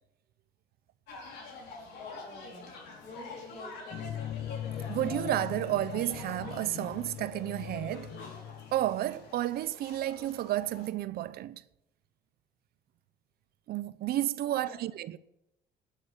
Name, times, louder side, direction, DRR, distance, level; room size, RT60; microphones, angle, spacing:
sound 1, 1.1-10.9, left 3 dB, 80° left, 4.9 m, -46 dB
voice 1, 2.0-2.8 3.0-4.2 14.4-14.8, left 3 dB, 45° left, 5.1 m, -48 dB
sound 2, 3.9-9.3, left 11 dB, 65° left, 0.8 m, -41 dB
voice 2, 4.9-8.1 8.7-11.6 13.7-15.2, right 14 dB, 70° right, 0.8 m, -31 dB
12.0 x 9.2 x 9.2 m
cardioid pair, 110°, 17 cm